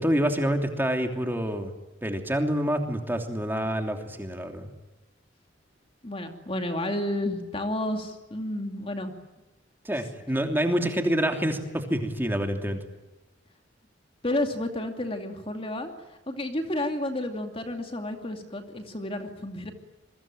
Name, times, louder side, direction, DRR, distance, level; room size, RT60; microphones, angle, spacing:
voice 1, 0.0-1.7 2.0-4.7 9.8-12.8, equal, 10° right, 4 dB, 3.0 m, -27 dB
voice 2, 6.0-9.1 14.2-15.9 16.3-19.7, left 1 dB, 30° left, 5 dB, 2.4 m, -31 dB
28.0 x 23.0 x 9.0 m, 1.1 s
head